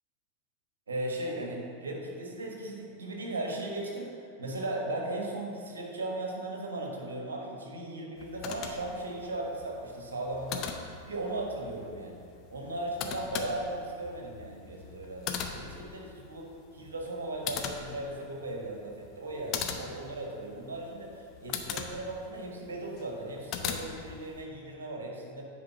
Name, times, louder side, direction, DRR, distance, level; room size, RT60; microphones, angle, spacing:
voice 1, 0.9-10.7 11.1-12.2 12.5-25.4, right 2 dB, 70° right, 0 dB, 1.5 m, -37 dB
sound 1, 8.2-24.4, left 7 dB, 35° left, 0.7 m, -41 dB
9.4 x 4.8 x 5.8 m, 2.3 s
figure-of-eight pair, 90°, 0 cm